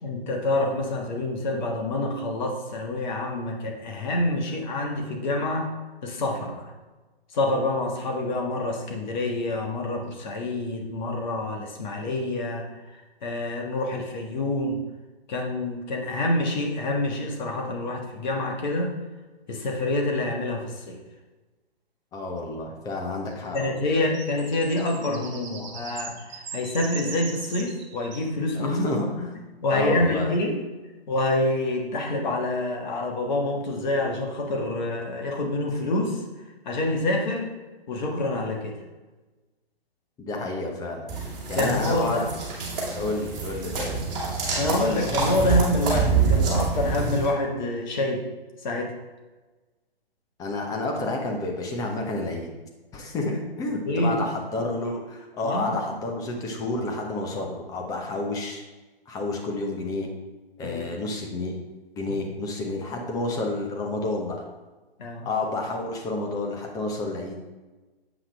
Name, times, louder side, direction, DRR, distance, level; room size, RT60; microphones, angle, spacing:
voice 1, 0.0-5.7 6.0-6.7 7.3-12.7 13.2-14.8 15.3-18.9 19.5-21.0 23.5-28.8 29.6-30.6 31.1-36.2 36.6-37.5 37.9-38.8 41.6-42.3 43.0-43.1 44.6-48.2 48.6-48.9 53.8-54.2 55.4-55.7 60.6-60.8 65.0-65.3, left 2 dB, 45° left, 1 dB, 1.5 m, -27 dB
voice 2, 22.1-23.8 28.5-29.3 29.7-30.3 40.2-41.1 41.5-42.2 42.9-44.0 50.4-52.5 52.9-58.6 59.1-60.1 60.6-61.6 62.0-64.4 65.2-67.4, left 2 dB, 10° left, 1 dB, 0.8 m, -30 dB
sound 1, 23.3-28.3, right 6 dB, 45° right, 1.1 m, -40 dB
sound 2, 41.1-47.3, right 5 dB, 25° right, 2.3 m, -26 dB
7.8 x 5.6 x 3.4 m, 1.2 s
figure-of-eight pair, 135°, 31 cm